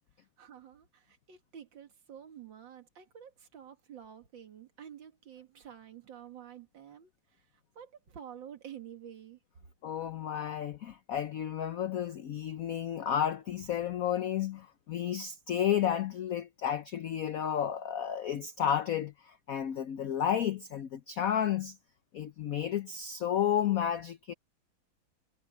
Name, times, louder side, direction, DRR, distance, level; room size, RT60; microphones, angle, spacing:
voice 1, 0.4-7.5 7.7-9.4, right 9 dB, 65° right, 2.5 m, -49 dB
voice 2, 9.8-21.8 22.1-24.3, left 9 dB, 65° left, 0.9 m, -32 dB
omnidirectional pair, 2.3 m